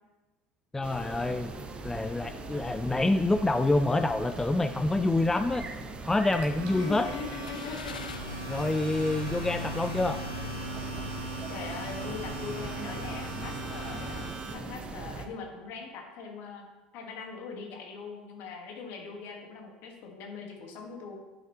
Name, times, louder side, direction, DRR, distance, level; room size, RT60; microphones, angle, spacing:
voice 1, 0.7-1.5 1.8-5.7 6.0-7.1 8.5-10.2, left 2 dB, 10° left, 10 dB, 0.3 m, -27 dB
sound 1, 0.8-15.3, right 3 dB, 25° right, 0.8 m, -41 dB
Domestic sounds home sounds, 6.4-14.5, right 6 dB, 55° right, 1.9 m, -41 dB
voice 2, 6.7-7.9 11.5-16.6 16.9-21.2, left 5 dB, 55° left, 2 dB, 1.7 m, -41 dB
sound 2, 7.4-14.3, left 6 dB, 80° left, 0.4 m, -41 dB
10.0 x 6.2 x 3.1 m, 1.2 s
figure-of-eight pair, 70°, 4 cm